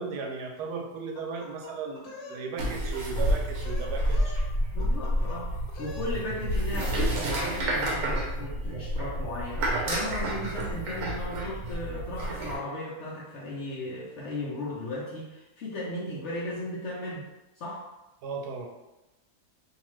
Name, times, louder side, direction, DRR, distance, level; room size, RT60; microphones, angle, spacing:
voice 1, 0.0-4.4 18.2-18.7, right 5 dB, 90° right, 1 dB, 1.1 m, -36 dB
sound 1, 1.1-2.4 2.7-3.2 3.5-4.5 4.8-5.4 5.7-6.1, left 4 dB, 85° left, 1.2 m, -45 dB
sound 2, 2.6-12.6, right 1 dB, 65° right, 0.9 m, -29 dB
voice 2, 4.7-5.5 5.8-17.3 17.6-17.8, left 1 dB, 65° left, -5 dB, 0.8 m, -36 dB
2.8 x 2.3 x 3.1 m, 0.98 s
omnidirectional pair, 1.7 m